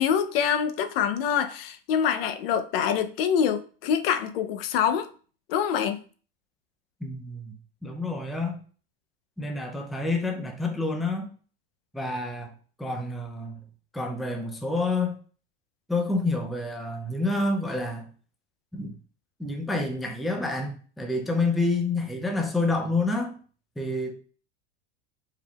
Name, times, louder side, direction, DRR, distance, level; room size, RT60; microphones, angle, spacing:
voice 1, 0.0-5.1 5.5-6.0, left 8 dB, 75° left, 0.6 m, -25 dB
voice 2, 7.0-8.6 9.4-11.3 11.9-12.5 12.8-13.6 13.9-15.2 15.9-18.1 18.7-19.0 19.4-23.4 23.8-24.1, left 2 dB, ahead, 0.3 m, -28 dB
4.7 x 3.4 x 2.3 m
supercardioid pair, 140°, 30 cm